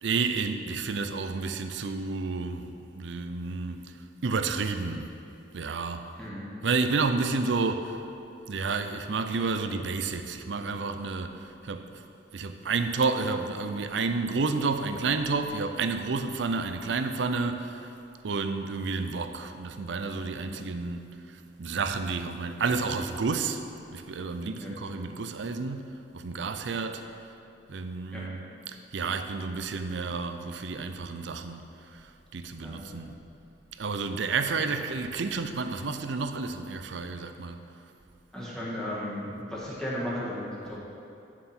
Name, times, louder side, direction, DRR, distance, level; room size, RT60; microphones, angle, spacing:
voice 1, 0.0-3.9 4.2-5.1 5.5-6.1 6.6-8.0 8.5-12.0 12.3-17.9 18.2-23.7 23.9-27.1 27.7-31.6 31.9-33.1 33.8-37.7 40.7-40.8, right 4 dB, 70° right, 8 dB, 0.5 m, -30 dB
voice 2, 6.2-6.5 20.4-20.6 24.6-24.7 28.1-28.3 32.6-32.9 34.4-34.6 38.3-40.8, left 1 dB, 5° left, -7 dB, 1.8 m, -35 dB
9.0 x 7.2 x 4.4 m, 2.6 s
head